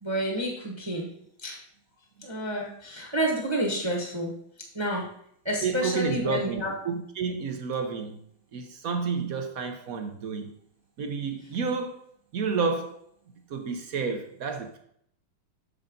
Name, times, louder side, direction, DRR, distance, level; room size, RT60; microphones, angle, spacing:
voice 1, 0.0-1.1 1.4-1.6 2.2-4.3 4.7-5.1 5.4-6.7, right 1 dB, 15° right, -1 dB, 1.1 m, -29 dB
voice 2, 5.6-8.2 8.5-10.5 11.0-12.0 12.3-13.0 13.5-14.8, right 5 dB, 60° right, 5 dB, 0.9 m, -30 dB
6.9 x 6.6 x 3.8 m, 0.68 s
omnidirectional pair, 2.3 m